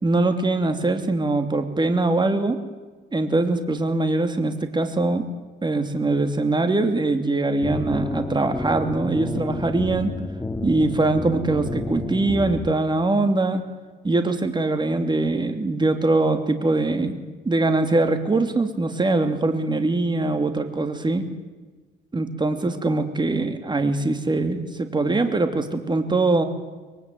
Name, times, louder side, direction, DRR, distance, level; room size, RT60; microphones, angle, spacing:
voice 1, 0.0-2.6 3.1-5.3 5.6-10.1 10.6-13.7 14.0-21.3 22.1-26.4, right 2 dB, 20° right, 7 dB, 2.9 m, -22 dB
Brother Isnt Home, 7.6-12.7, left 2 dB, 10° left, 2.1 m, -30 dB
24.0 x 23.5 x 9.4 m, 1.3 s
cardioid pair, 90°, 20 cm